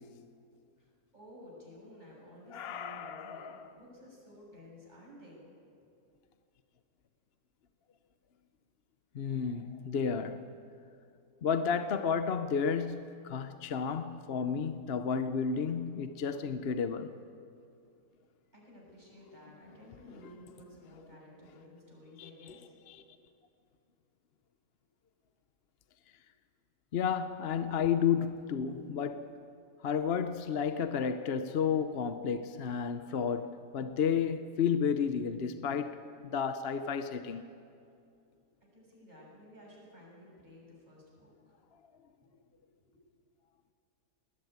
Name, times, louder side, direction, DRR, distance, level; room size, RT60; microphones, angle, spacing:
voice 1, 0.8-5.4 18.5-22.7 38.6-41.5 42.2-43.0, left 1 dB, 25° right, 7.3 m, -54 dB
voice 2, 2.5-3.7 9.1-10.5 11.4-17.1 22.2-22.3 22.9-23.0 26.9-29.3 29.8-37.4, left 7 dB, 50° left, 0.8 m, -32 dB
21.0 x 18.5 x 9.5 m
omnidirectional pair, 1.7 m